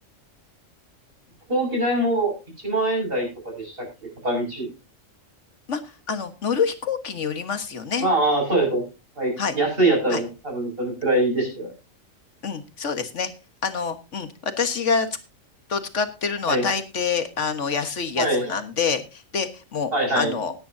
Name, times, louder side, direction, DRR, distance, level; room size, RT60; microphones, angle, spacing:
voice 1, 1.5-2.3 2.6-3.9 4.2-4.7 8.0-8.8 9.2-11.7 16.5-16.6 18.2-18.6 19.9-20.3, right 1 dB, 45° right, 1 dB, 6.8 m, -23 dB
voice 2, 5.7-8.1 9.4-9.6 10.1-10.2 12.4-13.3 13.6-15.1 15.7-20.5, left 5 dB, 65° left, 9 dB, 1.8 m, -26 dB
18.0 x 10.0 x 2.7 m, 0.29 s
omnidirectional pair, 1.4 m